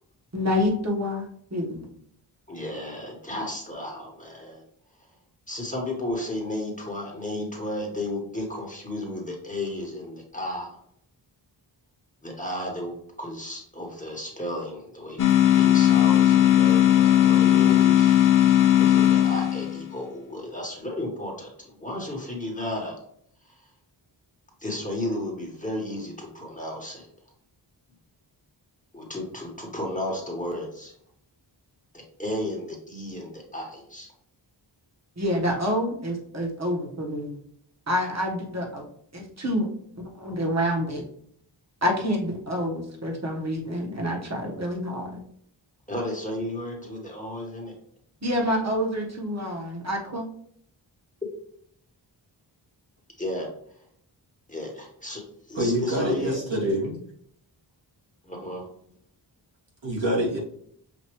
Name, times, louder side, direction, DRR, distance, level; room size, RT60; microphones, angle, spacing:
voice 1, 0.3-1.9 35.2-37.4 37.9-38.8 39.1-39.7 40.2-41.0 41.8-45.2 48.2-50.2, equal, 35° right, -1 dB, 1.3 m, -27 dB
voice 2, 2.5-4.6 5.5-10.8 12.2-15.3 15.5-18.3 18.8-22.9 23.4-23.5 24.6-27.1 28.9-30.9 32.2-34.1 45.9-47.7 53.2-53.5 54.5-55.2 55.5-56.4 58.2-58.7, left 1 dB, 15° left, -1 dB, 1.2 m, -33 dB
sound 1, 15.2-19.9, left 11 dB, 45° left, 0.5 m, -18 dB
voice 3, 55.5-57.0 59.8-60.4, equal, 80° right, -5 dB, 1.7 m, -25 dB
6.2 x 2.6 x 3.0 m, 0.68 s
wide cardioid pair, 85°, 45 cm